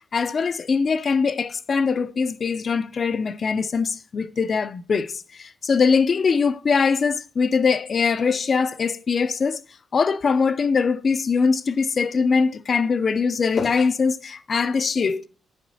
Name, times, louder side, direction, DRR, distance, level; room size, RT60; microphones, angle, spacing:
voice 1, 0.1-9.6 9.9-15.3, left 5 dB, 40° left, 0.5 m, -22 dB
10.5 x 8.3 x 2.7 m
cardioid pair, 125°, 0 cm